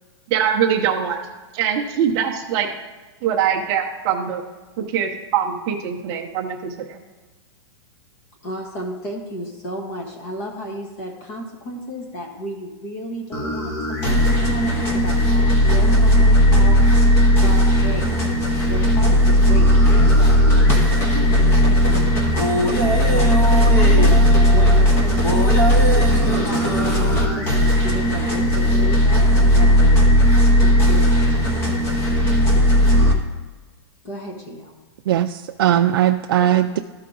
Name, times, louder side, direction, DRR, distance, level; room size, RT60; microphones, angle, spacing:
voice 1, 0.3-1.2 1.5-2.7 3.2-4.4 4.8-7.0, right 8 dB, 25° right, 1 dB, 0.7 m, -22 dB
voice 2, 8.4-16.8 17.4-18.2 18.7-29.9 30.6-31.6 34.0-34.7, equal, 35° left, 2 dB, 1.1 m, -33 dB
sound 1, 13.3-33.1, equal, 15° left, 0.9 m, -16 dB
voice 3, 35.1-36.8, right 11 dB, 55° right, 5 dB, 0.4 m, -18 dB
13.0 x 4.7 x 3.9 m, 1.3 s
supercardioid pair, 175°, 15 cm